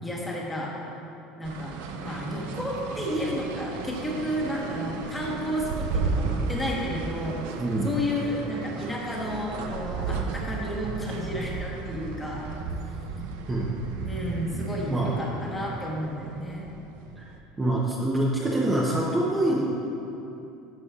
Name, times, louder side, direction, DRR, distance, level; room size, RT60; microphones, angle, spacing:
voice 1, 0.0-0.8 1.4-7.4 7.8-12.5 14.0-16.7, left 1 dB, 10° left, -4 dB, 1.2 m, -32 dB
sound 1, 1.4-17.4, right 4 dB, 85° right, 0.5 m, -34 dB
voice 2, 7.6-7.9 13.5-13.7 14.9-15.1 17.2-17.3 17.6-19.6, right 1 dB, 15° right, -4 dB, 0.8 m, -25 dB
11.0 x 6.3 x 2.4 m, 2.8 s
cardioid pair, 135°, 0 cm